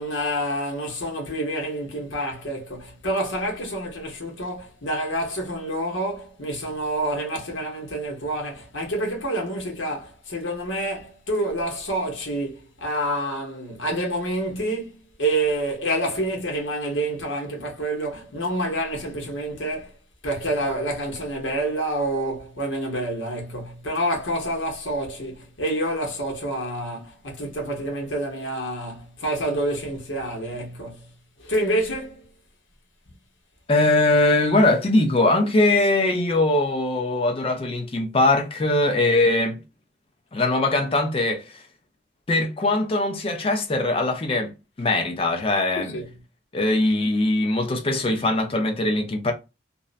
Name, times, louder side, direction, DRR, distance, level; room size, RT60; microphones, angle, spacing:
voice 1, 0.0-14.9 15.2-20.0 20.2-31.1 31.4-32.3 45.8-46.1, right 1 dB, 75° left, 0.9 m, -28 dB
voice 2, 33.7-39.6 40.3-41.4 42.3-44.5 44.8-45.9 46.5-49.3, left 2 dB, 30° left, 0.5 m, -21 dB
2.6 x 2.1 x 2.4 m
head